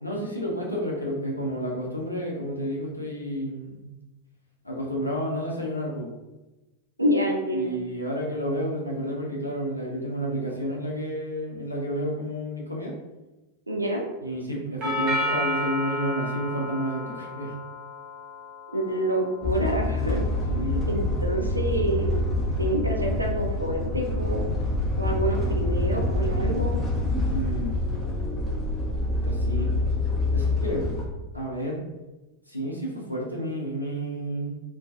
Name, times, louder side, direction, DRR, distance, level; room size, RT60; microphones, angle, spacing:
voice 1, 0.0-3.8 4.6-6.1 7.5-12.9 14.2-17.6 20.5-20.9 27.3-27.8 29.1-29.8 30.3-30.9 31.3-31.8 32.5-34.5, equal, 85° left, -3 dB, 0.6 m, -30 dB
voice 2, 7.0-7.7 13.7-14.0 18.7-20.2 20.9-22.2 22.6-24.4 25.0-26.8, right 1 dB, 85° right, 1 dB, 0.4 m, -27 dB
Doorbell, 14.8-22.9, equal, 40° right, 0.7 m, -34 dB
sound 1, 19.4-31.0, left 2 dB, 10° left, 0.7 m, -26 dB
2.3 x 2.2 x 2.6 m, 1.1 s
figure-of-eight pair, 90°, 0 cm